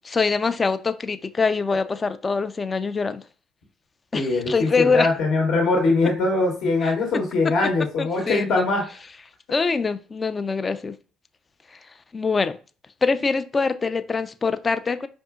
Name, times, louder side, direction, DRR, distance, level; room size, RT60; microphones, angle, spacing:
voice 1, 0.0-3.2 4.1-5.1 6.8-6.9 8.0-8.7 9.5-10.9 12.1-12.6 13.0-15.1, left 4 dB, 30° left, 0.3 m, -24 dB
voice 2, 4.1-8.8, left 3 dB, 60° left, 1.0 m, -22 dB
4.7 x 2.6 x 2.3 m
hypercardioid pair, 50°, 0 cm